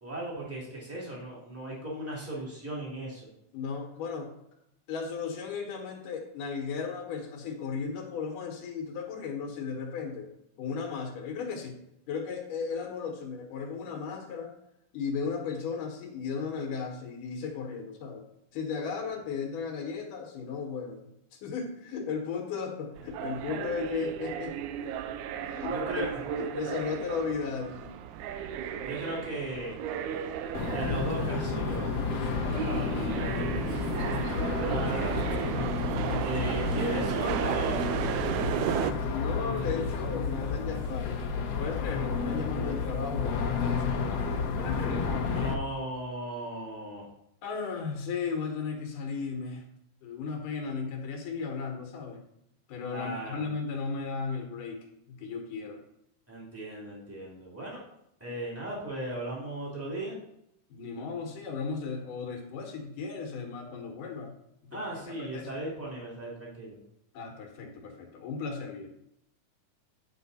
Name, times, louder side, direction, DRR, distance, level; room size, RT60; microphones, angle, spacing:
voice 1, 0.0-3.2 25.7-26.1 28.8-29.8 30.7-32.0 32.6-32.8 33.1-33.8 34.6-35.2 36.2-38.6 45.3-47.0 52.9-53.5 56.3-57.8 58.2-60.2 64.7-66.8, right 1 dB, 5° right, -4 dB, 2.4 m, -37 dB
voice 2, 3.5-4.3 4.9-10.3 10.6-11.8 12.1-14.5 14.9-18.2 18.5-21.0 21.3-24.6 25.4-26.0 26.4-27.9 39.1-41.1 41.6-45.2 47.4-49.6 50.0-52.2 52.7-55.8 60.7-64.3 64.7-65.5 67.1-68.9, left 5 dB, 80° left, 2 dB, 2.8 m, -35 dB
sound 1, 23.0-38.9, right 9 dB, 80° right, 1.9 m, -34 dB
sound 2, 30.5-45.5, left 5 dB, 65° left, 1.8 m, -31 dB
9.6 x 5.7 x 4.1 m, 0.79 s
omnidirectional pair, 3.7 m